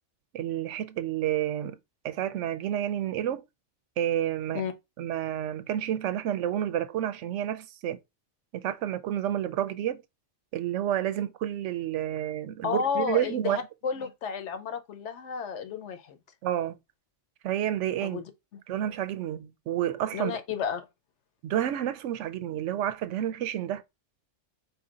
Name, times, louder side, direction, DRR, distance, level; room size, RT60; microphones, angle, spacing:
voice 1, 0.3-1.8 2.0-3.4 4.0-4.6 5.0-8.0 8.5-10.0 10.5-13.6 16.4-16.8 17.4-18.2 18.7-20.4 21.4-23.8, right 11 dB, 80° right, 0.9 m, -30 dB
voice 2, 12.6-16.2 18.0-18.2 18.5-18.6 20.1-20.9, left 6 dB, 75° left, 1.0 m, -32 dB
4.5 x 2.7 x 3.7 m
omnidirectional pair, 1.2 m